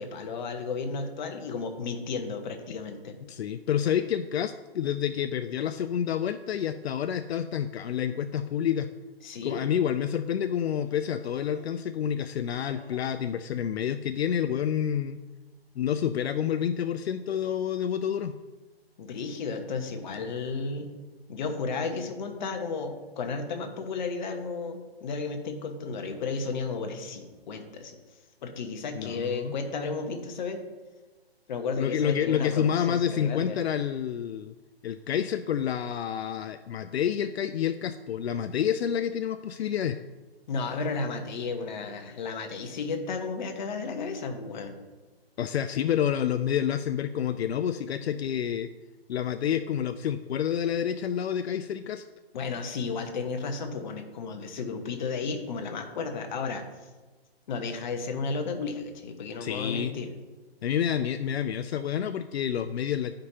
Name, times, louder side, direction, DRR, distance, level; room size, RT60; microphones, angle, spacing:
voice 1, 0.0-3.1 9.2-9.6 19.0-20.9 21.3-28.0 28.4-30.6 31.5-33.6 40.5-44.8 52.3-56.6 57.5-60.1, left 4 dB, 45° left, 5 dB, 1.1 m, -33 dB
voice 2, 3.3-8.9 9.4-15.2 15.8-18.3 29.0-29.5 31.8-34.5 34.8-40.0 45.4-48.7 49.1-52.0 59.4-59.9 60.6-63.1, left 9 dB, 80° left, 9 dB, 0.5 m, -28 dB
Human voice, 10.7-11.9 12.4-13.4, right 1 dB, 15° left, 2.0 m, -52 dB
10.5 x 5.1 x 2.9 m, 1.3 s
hypercardioid pair, 150°, 31 cm